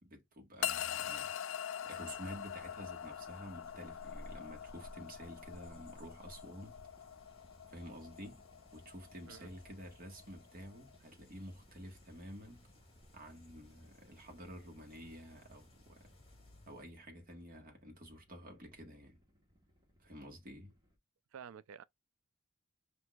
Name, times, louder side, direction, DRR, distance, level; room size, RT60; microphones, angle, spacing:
voice 1, 0.0-1.3 1.8-6.8 7.7-8.5 8.7-12.6 13.1-16.1 16.7-19.2 20.0-20.7, equal, 45° right, 1.4 m, -50 dB
sound 1, 0.6-11.0, left 9 dB, 70° left, 0.4 m, -44 dB
sound 2, 1.8-16.9, left 1 dB, 30° left, 2.1 m, -59 dB
sound 3, 1.9-21.0, equal, 20° right, 1.2 m, -69 dB
voice 2, 21.3-21.8, right 7 dB, 85° right, 0.4 m, -50 dB
6.0 x 2.7 x 2.3 m
head